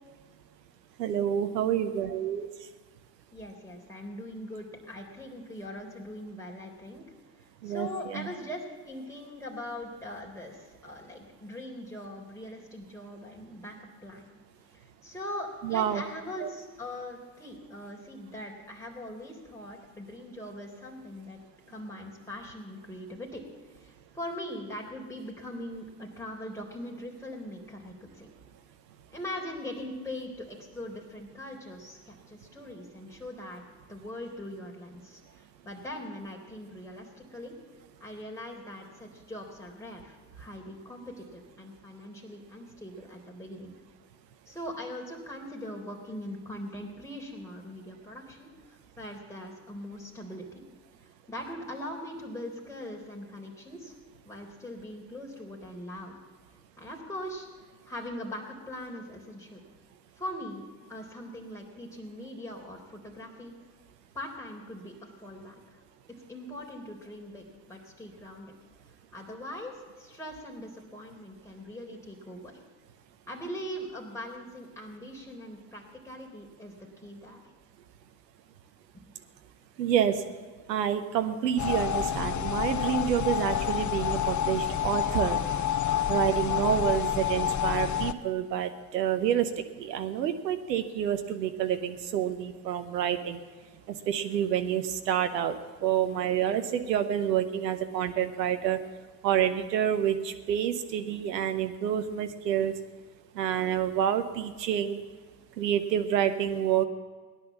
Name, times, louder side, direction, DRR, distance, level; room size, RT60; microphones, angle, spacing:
voice 1, 1.0-2.7 7.6-8.3 15.6-16.0 16.4-16.5 79.8-80.2 80.7-85.4 86.1-93.4 93.9-98.8 99.2-102.7 103.3-105.0 105.6-106.8, right 9 dB, 90° right, 9 dB, 0.9 m, -28 dB
voice 2, 3.3-7.0 7.4-14.3 14.7-21.4 21.7-23.4 23.7-28.3 29.1-33.6 33.9-37.5 38.0-43.8 44.5-50.6 51.0-53.9 54.3-56.2 56.8-57.5 57.9-59.6 60.2-60.6 60.9-63.6 64.1-65.8 66.3-68.5 69.1-72.5 73.3-76.7 77.0-77.4, left 1 dB, 5° left, -2 dB, 3.7 m, -41 dB
sound 1, 81.6-88.1, left 9 dB, 35° left, 0.9 m, -28 dB
17.5 x 11.0 x 7.2 m, 1.4 s
hypercardioid pair, 45°, 48 cm